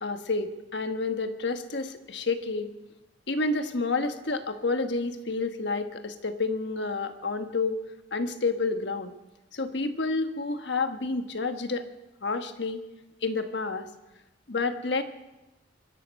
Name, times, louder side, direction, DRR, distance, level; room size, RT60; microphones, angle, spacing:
voice 1, 0.0-2.7 3.3-7.8 8.1-9.1 9.5-11.8 12.2-12.8 13.2-13.9 14.5-15.0, left 3 dB, 70° left, 8 dB, 1.3 m, -29 dB
24.5 x 11.0 x 5.3 m, 1.0 s
head